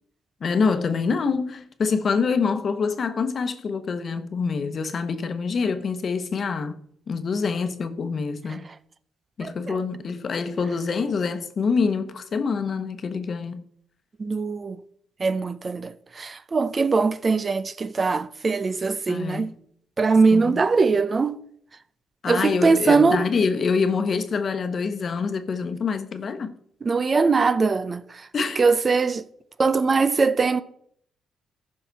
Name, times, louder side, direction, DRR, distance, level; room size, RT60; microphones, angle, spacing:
voice 1, 0.4-8.7 9.4-13.6 19.1-19.6 20.3-20.6 22.2-26.5 28.3-28.6, left 5 dB, 45° left, 1.0 m, -26 dB
voice 2, 9.4-9.8 14.2-14.8 15.2-19.5 20.0-21.4 22.3-23.2 26.8-28.3 28.6-29.2 29.6-30.6, right 4 dB, 35° right, 0.5 m, -21 dB
14.5 x 5.7 x 4.1 m
cardioid pair, 90°, 0 cm